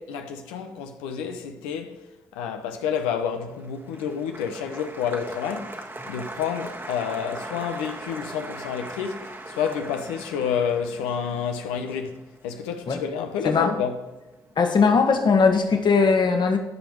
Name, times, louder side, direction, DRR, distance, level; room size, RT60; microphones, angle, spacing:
voice 1, 0.0-2.0 2.3-12.2 12.4-14.0, left 7 dB, 90° left, 0.9 m, -29 dB
Applause, 3.4-13.7 14.0-14.6, right 2 dB, 25° right, 1.4 m, -40 dB
voice 2, 13.4-13.8 14.6-16.6, left 5 dB, 55° left, 1.6 m, -19 dB
14.5 x 5.2 x 4.6 m
hypercardioid pair, 45°, 9 cm